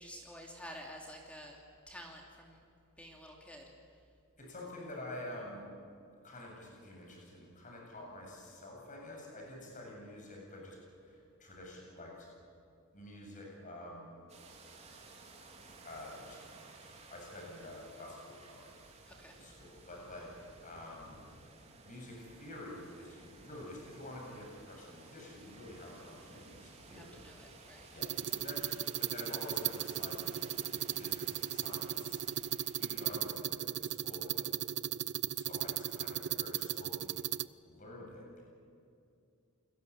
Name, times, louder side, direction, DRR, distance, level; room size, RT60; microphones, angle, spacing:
voice 1, 0.0-1.6 1.9-2.6 3.0-3.6 19.1-19.4 26.8-27.9, equal, 5° left, 0 dB, 3.0 m, -50 dB
voice 2, 4.4-5.7 6.2-10.8 11.0-12.3 12.9-14.2 15.8-16.4 17.1-18.7 19.1-21.2 21.8-27.2 27.9-32.2 32.8-34.5 35.3-37.2 37.7-38.4, left 1 dB, 35° left, -1 dB, 7.6 m, -48 dB
sound 1, 14.3-33.1, right 3 dB, 30° right, 4.0 m, -56 dB
sound 2, 28.0-37.5, right 11 dB, 55° right, 0.6 m, -36 dB
29.5 x 22.0 x 8.7 m, 2.5 s
head